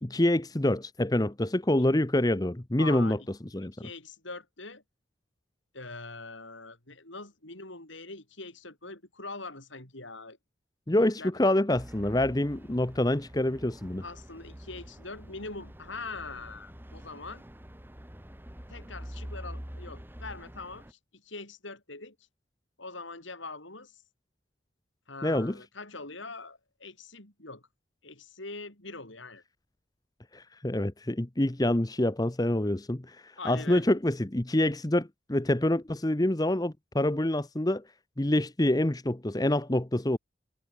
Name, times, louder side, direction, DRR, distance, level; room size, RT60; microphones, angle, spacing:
voice 1, 0.0-3.2 3.5-3.8 10.9-14.0 25.2-25.5 30.3-37.8 38.2-40.2, left 1 dB, 20° left, 0.8 m, -26 dB
voice 2, 2.8-3.3 3.6-4.8 5.7-10.4 11.0-11.3 11.6-11.7 14.0-17.4 18.7-22.2 22.8-24.0 25.1-27.7 28.0-29.4 33.4-33.9, left 3 dB, 70° left, 6.0 m, -43 dB
sound 1, 11.7-20.9, equal, 10° right, 1.6 m, -46 dB
head